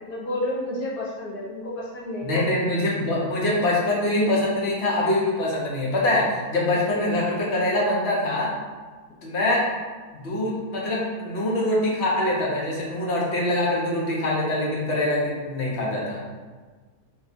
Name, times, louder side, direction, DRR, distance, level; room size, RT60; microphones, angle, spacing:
voice 1, 0.1-2.7, left 1 dB, 80° left, -6 dB, 1.5 m, -31 dB
voice 2, 2.2-8.5 9.2-9.6 10.1-16.2, left 1 dB, 50° left, -4 dB, 1.0 m, -24 dB
3.7 x 2.3 x 4.2 m, 1.4 s
omnidirectional pair, 1.6 m